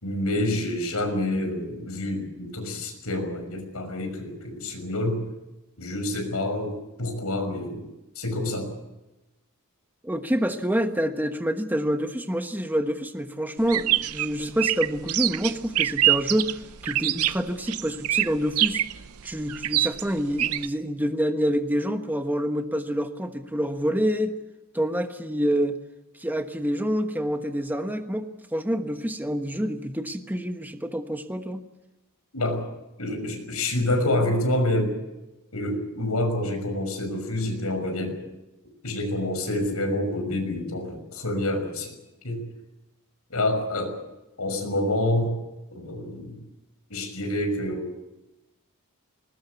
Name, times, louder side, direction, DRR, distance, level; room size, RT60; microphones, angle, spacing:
voice 1, 0.0-5.2 5.8-7.8 8.2-8.7 32.3-32.6 33.0-34.9 35.5-38.2 38.8-41.9 42.2-42.4 43.3-44.0 44.4-45.4 45.7-46.4 46.9-47.9, left 1 dB, 85° left, 6 dB, 6.0 m, -27 dB
voice 2, 10.0-18.8 19.2-24.4 24.7-25.8 26.2-31.6, equal, 10° right, 6 dB, 1.2 m, -27 dB
sound 1, 13.6-20.7, right 14 dB, 80° right, 0.7 m, -25 dB
20.5 x 20.5 x 8.3 m, 1.0 s
head